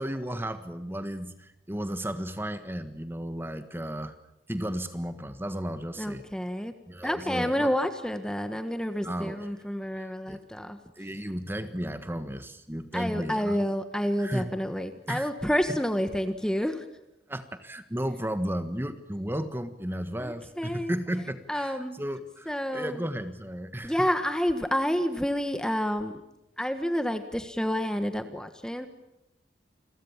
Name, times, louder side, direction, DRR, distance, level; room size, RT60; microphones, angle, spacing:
voice 1, 0.0-4.1 4.5-6.2 6.9-7.7 9.0-9.5 10.0-10.4 11.0-13.7 14.2-14.5 15.1-15.3 15.7-15.8 17.3-24.1, equal, 10° right, 10 dB, 1.5 m, -34 dB
voice 2, 6.0-6.7 7.0-10.8 12.9-16.8 20.2-20.9 21.5-21.9 22.5-23.0 23.8-26.1 26.6-28.9, equal, 5° left, 9 dB, 1.5 m, -29 dB
29.5 x 22.5 x 7.4 m, 0.90 s
head